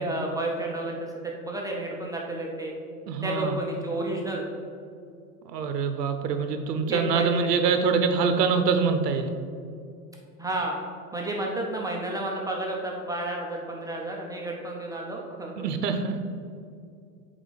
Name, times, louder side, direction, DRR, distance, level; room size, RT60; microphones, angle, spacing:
voice 1, 0.0-2.8 3.2-4.5 6.9-7.7 10.4-10.8 11.1-15.7, right 1 dB, 10° right, -1 dB, 0.5 m, -31 dB
voice 2, 3.1-3.6 5.5-9.3 15.6-16.4, right 5 dB, 90° right, 7 dB, 0.7 m, -25 dB
8.2 x 3.7 x 4.0 m, 2.4 s
hypercardioid pair, 115°, 47 cm